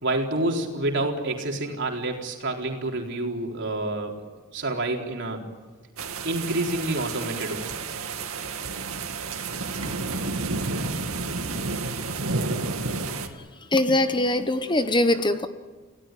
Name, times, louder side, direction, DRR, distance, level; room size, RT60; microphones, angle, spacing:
voice 1, 0.0-4.1 4.5-5.4 6.2-7.7, right 2 dB, 55° right, 1 dB, 4.1 m, -28 dB
sound 1, 6.0-13.3, right 3 dB, 80° right, 2.3 m, -30 dB
voice 2, 13.7-15.5, left 1 dB, 20° left, 9 dB, 1.0 m, -22 dB
29.5 x 17.5 x 9.3 m, 1.4 s
head